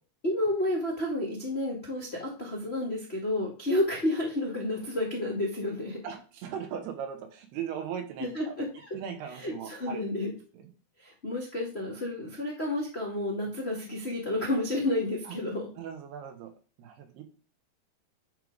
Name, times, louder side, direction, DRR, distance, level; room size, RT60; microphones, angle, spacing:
voice 1, 0.2-6.0 8.2-8.7 9.4-10.3 11.0-15.7, left 1 dB, 80° left, -3 dB, 0.5 m, -30 dB
voice 2, 6.0-8.6 8.9-10.0 10.3-10.7 15.3-15.4 15.8-16.5 16.8-17.2, right 8 dB, 85° right, 5 dB, 3.3 m, -38 dB
10.0 x 3.5 x 5.1 m, 0.36 s
omnidirectional pair, 4.6 m